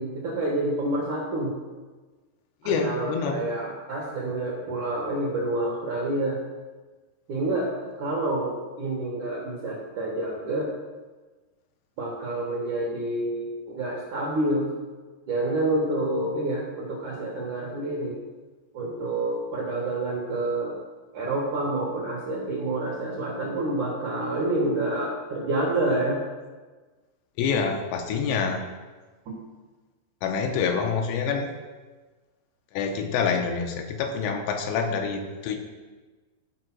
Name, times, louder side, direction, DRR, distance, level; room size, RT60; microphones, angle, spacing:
voice 1, 0.0-1.5 2.6-6.4 7.3-7.7 8.0-10.7 12.0-14.7 15.3-18.2 18.7-20.8 21.1-26.2 29.3-29.4, right 2 dB, 60° right, -3 dB, 2.0 m, -28 dB
voice 2, 2.6-3.4 27.4-28.6 30.2-31.5 32.7-35.6, left 5 dB, 80° left, 4 dB, 3.0 m, -26 dB
13.0 x 4.9 x 6.0 m, 1.3 s
omnidirectional pair, 5.3 m